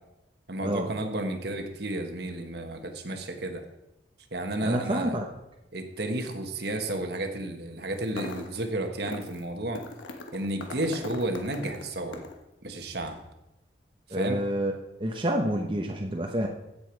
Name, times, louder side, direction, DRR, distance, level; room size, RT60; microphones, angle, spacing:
voice 1, 0.5-3.6 4.3-5.2 5.7-9.8 10.3-12.2 12.6-13.2 14.1-14.4, right 1 dB, 60° right, 5 dB, 1.4 m, -32 dB
voice 2, 4.6-5.2 14.1-14.7 15.0-16.5, right 1 dB, 25° right, 1 dB, 0.9 m, -28 dB
sound 1, 7.9-8.6 9.1-9.4 9.7-12.4, left 2 dB, 85° left, 1.4 m, -40 dB
15.5 x 7.0 x 4.6 m, 0.92 s
head